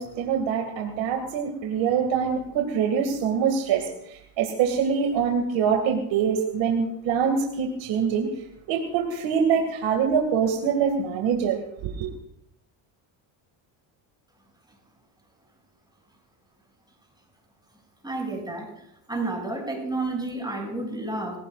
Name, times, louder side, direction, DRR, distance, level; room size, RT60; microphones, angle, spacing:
voice 1, 0.0-8.3 8.7-12.1, right 7 dB, 75° right, 3 dB, 2.2 m, -24 dB
voice 2, 18.0-18.7 19.1-21.4, right 2 dB, 10° right, 0 dB, 6.6 m, -30 dB
25.0 x 17.0 x 2.4 m, 0.74 s
cardioid pair, 100°, 45 cm